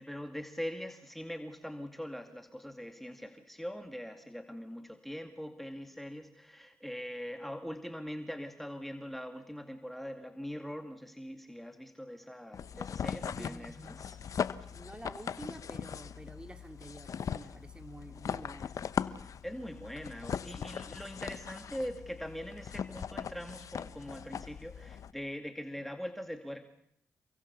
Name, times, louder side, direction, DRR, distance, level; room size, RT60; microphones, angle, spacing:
voice 1, 0.0-14.2 19.4-26.6, equal, 5° left, 6 dB, 2.3 m, -42 dB
sound 1, 12.5-25.1, left 7 dB, 65° left, 1.0 m, -39 dB
voice 2, 13.1-13.7 14.7-18.8, right 1 dB, 15° right, 7 dB, 2.9 m, -49 dB
28.5 x 23.0 x 7.0 m, 0.73 s
supercardioid pair, 55°, 6 cm